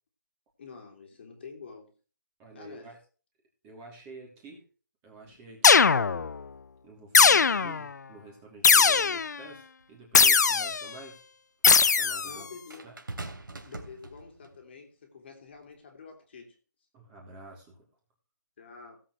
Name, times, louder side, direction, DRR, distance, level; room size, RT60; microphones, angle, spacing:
voice 1, 0.6-1.9 2.5-2.9 12.2-13.0 13.6-16.6 18.6-19.0, left 5 dB, 30° left, 3 dB, 2.8 m, -47 dB
voice 2, 2.4-3.0 3.6-4.6 5.0-6.5 6.8-11.2 12.0-12.5 12.8-12.9 16.9-17.7, right 3 dB, 15° right, 0 dB, 3.1 m, -49 dB
sound 1, 5.6-6.4 7.1-7.9 8.6-9.4 10.1-10.9 11.6-12.3, left 5 dB, 55° left, 0.6 m, -20 dB
sound 2, 9.8-9.9 12.7-14.6 15.5-15.7, right 2 dB, 85° right, 3.1 m, -42 dB
17.0 x 7.6 x 3.2 m, 0.37 s
hypercardioid pair, 170°, 11 cm